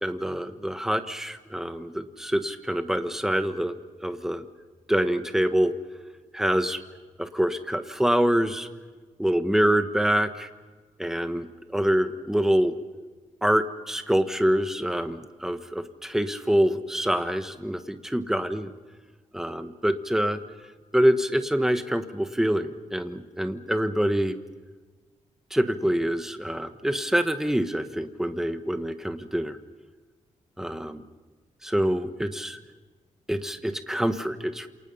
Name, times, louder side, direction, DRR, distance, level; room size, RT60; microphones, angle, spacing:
voice 1, 0.0-3.8 4.0-4.4 4.9-5.7 6.3-6.8 7.2-8.7 9.2-10.5 11.0-11.5 11.7-12.7 13.4-18.7 19.3-20.4 20.9-24.4 25.5-29.6 30.6-31.0 31.6-32.6 33.3-34.7, equal, 5° right, 9 dB, 1.3 m, -25 dB
28.5 x 28.0 x 5.6 m, 1.4 s
wide cardioid pair, 155°, 13 cm